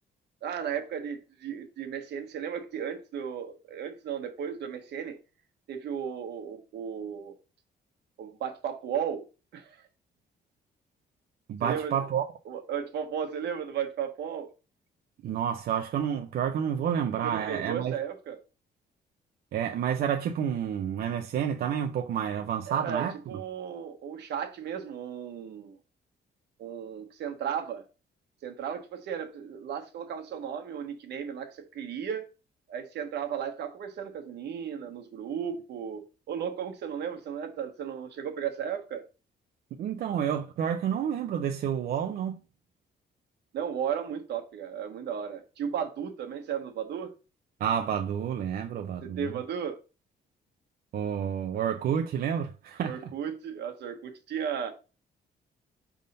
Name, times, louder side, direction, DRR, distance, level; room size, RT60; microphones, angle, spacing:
voice 1, 0.4-5.2 5.7-7.4 8.2-9.3 9.5-9.9 11.6-11.9 12.4-14.5 17.2-18.4 22.7-25.8 26.6-27.8 28.4-32.3 32.7-39.0 43.5-47.1 49.0-49.8 52.8-54.7, right 8 dB, 75° right, 1.2 m, -35 dB
voice 2, 11.5-12.3 15.2-17.9 19.5-23.2 39.8-42.4 47.6-49.3 50.9-53.1, right 8 dB, 60° right, 0.5 m, -29 dB
5.3 x 3.6 x 5.3 m
cardioid pair, 175°, 18 cm